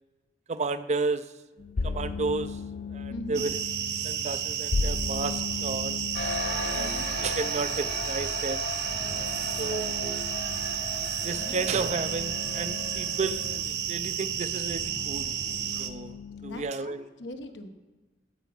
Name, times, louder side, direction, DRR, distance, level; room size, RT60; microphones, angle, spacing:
voice 1, 0.5-1.3 1.8-2.6 2.9-3.6 4.0-6.0 6.6-6.9 7.2-8.7 9.6-10.2 11.2-15.3 15.8-17.0, right 4 dB, 40° right, 13 dB, 0.4 m, -32 dB
sound 1, 1.6-16.7, left 4 dB, 45° left, 0.4 m, -38 dB
voice 2, 3.1-3.5 6.8-7.1 11.4-11.7 16.4-17.7, equal, 85° left, 6 dB, 1.0 m, -41 dB
sound 2, 3.3-15.9, right 9 dB, 65° right, 0.7 m, -32 dB
sound 3, 6.1-13.6, left 2 dB, 65° left, 1.7 m, -37 dB
14.5 x 5.5 x 5.5 m, 1.2 s
head